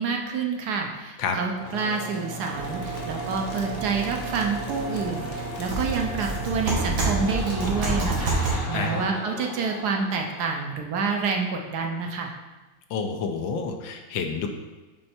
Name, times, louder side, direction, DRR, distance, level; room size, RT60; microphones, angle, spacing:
voice 1, 0.0-12.3, right 5 dB, 65° right, 2 dB, 1.2 m, -28 dB
sound 1, 1.6-11.1, right 1 dB, 45° left, 0.8 m, -35 dB
sound 2, 2.5-8.5, right 2 dB, 85° right, 2.3 m, -30 dB
voice 2, 12.9-14.5, left 5 dB, 85° left, 4 dB, 1.4 m, -29 dB
8.7 x 3.3 x 4.3 m, 1.2 s
omnidirectional pair, 2.1 m